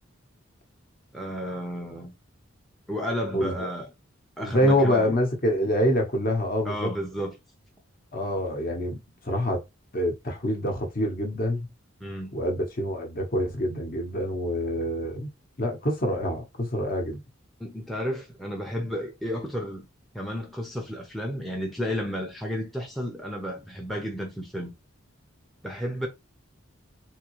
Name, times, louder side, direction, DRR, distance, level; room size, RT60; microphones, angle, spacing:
voice 1, 1.1-2.1 2.9-3.9 4.4-5.1 6.7-7.4 12.0-12.4 17.6-19.9 20.1-24.7 25.6-26.1, equal, ahead, 0.6 m, -32 dB
voice 2, 4.4-6.9 8.1-9.0 9.2-9.6 9.9-11.7 12.3-15.3 15.6-17.2, equal, 40° left, 0.9 m, -26 dB
3.6 x 2.7 x 3.0 m
head